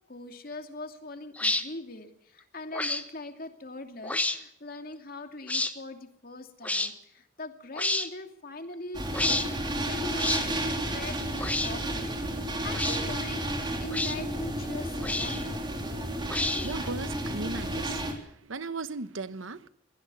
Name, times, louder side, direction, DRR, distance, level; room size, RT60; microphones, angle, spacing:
voice 1, 0.1-13.5 13.8-16.0, left 2 dB, 45° left, 2.7 m, -42 dB
sound 1, 1.4-1.6 2.7-3.0 4.0-4.4 5.5-5.7 6.6-6.9 7.8-8.1 9.1-9.5 10.2-10.4 11.4-11.7 12.7-13.0 13.9-14.2 15.0-15.5 16.3-16.8, left 2 dB, 5° left, 1.2 m, -29 dB
sound 2, 8.9-18.1, right 1 dB, 25° right, 3.5 m, -32 dB
voice 2, 16.3-19.7, right 3 dB, 85° right, 1.1 m, -37 dB
22.5 x 17.5 x 7.1 m
head